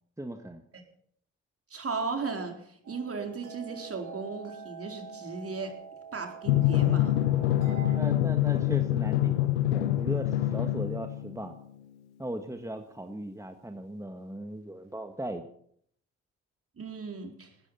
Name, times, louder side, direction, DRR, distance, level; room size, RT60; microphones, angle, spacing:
voice 1, 0.2-0.6 7.8-11.5 12.2-15.5, right 1 dB, 10° right, 6 dB, 1.8 m, -38 dB
voice 2, 1.7-5.8 6.1-7.1 16.8-17.5, right 4 dB, 45° right, 4 dB, 4.3 m, -36 dB
sound 1, 2.8-8.0, right 6 dB, 65° right, 4.7 m, -45 dB
Drum, 6.5-11.5, left 14 dB, 90° left, 0.8 m, -26 dB
18.5 x 13.5 x 5.7 m, 0.65 s
hypercardioid pair, 45°, 33 cm